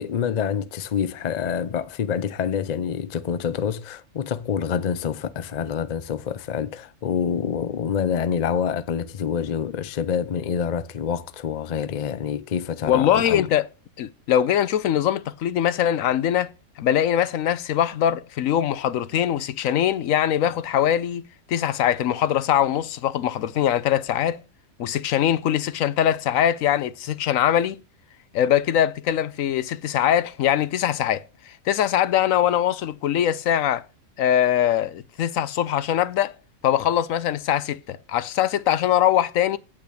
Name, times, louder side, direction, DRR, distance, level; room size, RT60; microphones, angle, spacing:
voice 1, 0.0-13.5, left 7 dB, 50° left, 0.5 m, -27 dB
voice 2, 12.9-13.7 14.0-16.5 16.8-21.2 21.5-24.4 24.8-27.8 28.3-33.8 34.2-36.3 36.6-39.6, left 10 dB, 75° left, 1.0 m, -22 dB
8.6 x 5.8 x 6.3 m
omnidirectional pair, 1.4 m